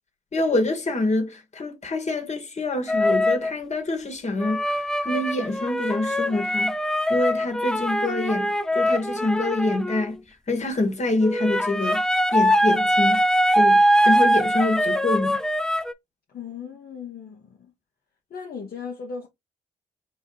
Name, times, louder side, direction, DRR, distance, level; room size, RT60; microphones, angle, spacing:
voice 1, 0.3-6.7 7.1-10.2 10.5-12.0 12.3-13.2 13.5-15.4, left 2 dB, 40° left, 1.7 m, -26 dB
sound 1, 2.9-3.5 4.4-10.1 11.2-15.9, equal, 5° left, 0.5 m, -22 dB
voice 2, 16.3-17.7 18.3-19.3, left 6 dB, 55° left, 1.1 m, -37 dB
4.1 x 2.8 x 3.9 m
hypercardioid pair, 50°, 18 cm